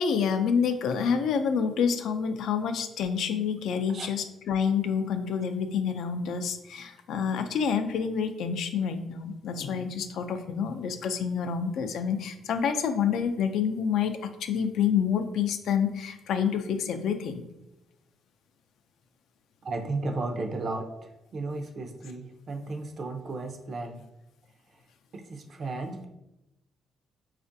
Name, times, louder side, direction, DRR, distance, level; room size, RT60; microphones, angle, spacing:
voice 1, 0.0-17.4 21.5-21.6, left 7 dB, 75° left, 8 dB, 0.3 m, -28 dB
voice 2, 19.6-20.9 21.3-24.0 25.1-26.1, right 3 dB, 50° right, 4 dB, 0.5 m, -34 dB
4.2 x 2.4 x 2.6 m, 0.91 s
cardioid pair, 90°, 0 cm